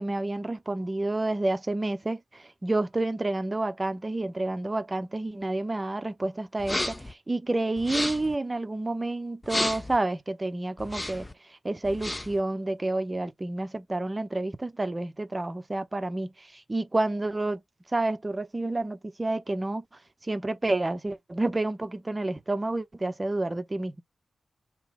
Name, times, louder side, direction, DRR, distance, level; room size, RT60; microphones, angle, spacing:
voice 1, 0.0-11.3 11.6-17.6 17.9-19.8 20.3-24.0, right 2 dB, 20° right, 0.7 m, -29 dB
sound 1, 6.6-7.1 7.8-8.3 9.4-10.0 10.8-11.3 11.8-12.4, left 1 dB, 15° left, 0.4 m, -32 dB
3.7 x 2.9 x 4.8 m
wide cardioid pair, 110°, 0 cm